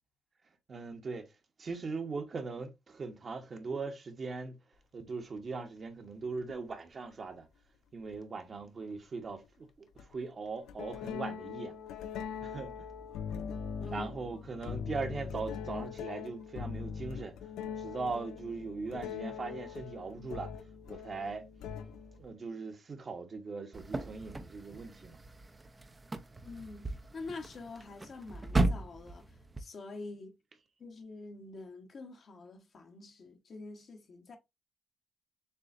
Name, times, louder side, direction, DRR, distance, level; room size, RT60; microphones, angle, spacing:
voice 1, 0.7-1.2 1.6-4.5 4.9-7.5 7.9-11.7 12.4-12.9 13.9-17.3 17.8-20.5 20.9-21.5 22.2-25.2, right 4 dB, 40° right, 1.0 m, -40 dB
sound 1, 6.5-6.6 8.1-8.2 10.0-10.1 10.7-22.3, left 7 dB, 85° left, 0.4 m, -41 dB
voice 2, 13.8-14.1 26.4-29.2 29.6-30.3 30.8-34.4, left 3 dB, 50° left, 1.1 m, -46 dB
sound 2, 23.7-29.6, right 2 dB, 20° right, 0.6 m, -36 dB
6.8 x 2.5 x 2.5 m
cardioid pair, 90°, 0 cm